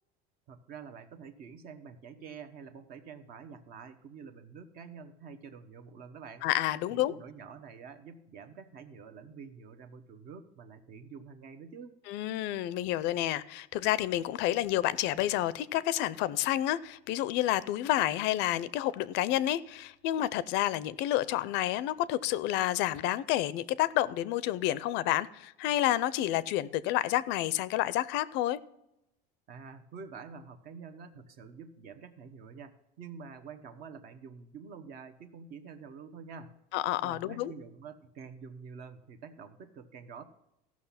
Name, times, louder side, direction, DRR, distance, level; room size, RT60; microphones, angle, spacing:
voice 1, 0.5-6.4 6.9-12.0 29.5-36.5 37.0-40.2, right 5 dB, 50° right, 1.1 m, -47 dB
voice 2, 6.4-7.1 12.1-28.6 36.7-37.5, left 14 dB, 60° left, 0.5 m, -29 dB
15.0 x 6.1 x 5.7 m
cardioid pair, 145°, 20 cm